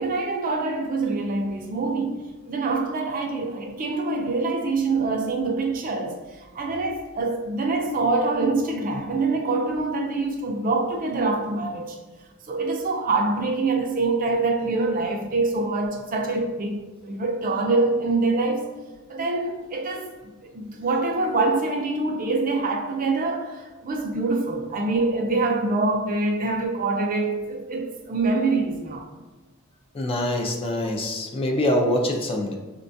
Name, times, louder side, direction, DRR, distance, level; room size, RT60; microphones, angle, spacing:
voice 1, 0.0-2.2 2.5-12.0 12.5-18.7 19.1-20.1 20.5-29.1, right 3 dB, 40° right, 0.4 m, -25 dB
voice 2, 29.9-32.5, left 1 dB, 25° left, 0.4 m, -24 dB
5.3 x 2.2 x 2.6 m
head